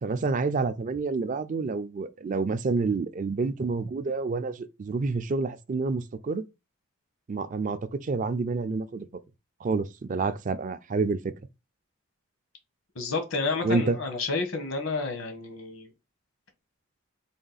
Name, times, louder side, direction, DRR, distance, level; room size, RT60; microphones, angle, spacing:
voice 1, 0.0-6.4 7.3-9.1 9.6-11.3 13.6-14.0, right 4 dB, 40° right, 0.4 m, -28 dB
voice 2, 12.9-15.9, left 3 dB, 75° left, 1.1 m, -30 dB
3.7 x 2.4 x 4.0 m
head